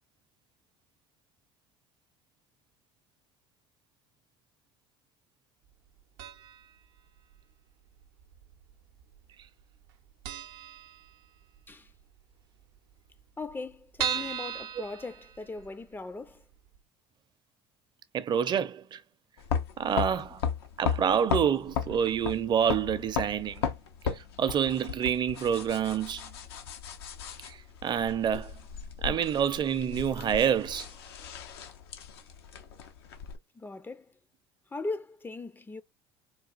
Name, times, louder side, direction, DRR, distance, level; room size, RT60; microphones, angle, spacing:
sound 1, 6.2-6.7 7.0-7.1 8.0-8.7 9.0-9.2 9.4-9.5 9.9-10.0 10.2-11.6 11.9-12.0 12.3-12.4 12.6-12.7 13.2-15.8 16.3-16.4 16.7-16.8, right 8 dB, 75° right, 0.6 m, -36 dB
voice 1, 13.4-16.4 33.6-34.1 34.7-35.8, left 3 dB, 15° left, 0.4 m, -39 dB
voice 2, 18.1-19.0 19.8-20.4 20.8-23.6 24.1-26.2 27.4-28.5 29.0-30.9, right 8 dB, 35° right, 0.6 m, -27 dB
sound 2, 19.4-33.4, left 7 dB, 80° left, 0.6 m, -36 dB
4.0 x 2.3 x 2.4 m
hypercardioid pair, 70°, 13 cm